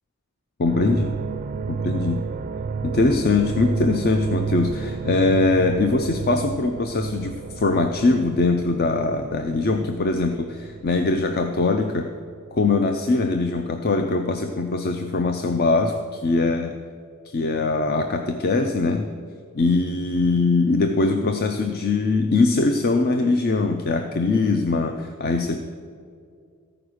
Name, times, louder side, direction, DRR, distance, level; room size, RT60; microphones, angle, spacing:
voice 1, 0.6-1.1 1.7-2.2 2.8-12.1 12.5-16.7 17.3-19.1 19.5-25.6, left 3 dB, 45° left, 6 dB, 0.5 m, -22 dB
sound 1, 0.6-12.8 13.0-13.5, right 5 dB, 40° right, 0.4 m, -31 dB
14.5 x 5.0 x 6.3 m, 2.2 s
head